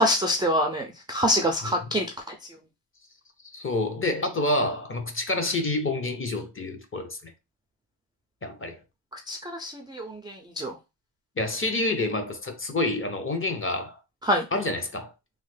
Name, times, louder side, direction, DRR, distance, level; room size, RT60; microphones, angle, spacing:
voice 1, 0.0-2.3 9.3-10.7 14.2-14.5, equal, 10° right, 0.3 m, -25 dB
voice 2, 3.5-7.3 8.4-8.8 11.4-14.0 14.5-15.1, left 2 dB, 25° left, 0.7 m, -28 dB
3.1 x 2.1 x 3.2 m
cardioid pair, 90°, 50 cm